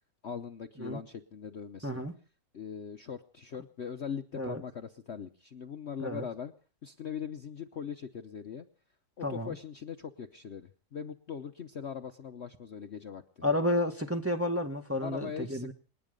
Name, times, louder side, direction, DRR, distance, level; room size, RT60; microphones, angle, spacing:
voice 1, 0.2-2.0 2.5-6.5 6.8-8.6 9.2-13.4 15.0-15.7, left 7 dB, 50° left, 1.0 m, -41 dB
voice 2, 1.8-2.1 4.3-4.6 6.0-6.3 9.2-9.6 13.4-15.7, left 1 dB, 10° right, 1.4 m, -31 dB
27.5 x 10.0 x 5.2 m
omnidirectional pair, 1.8 m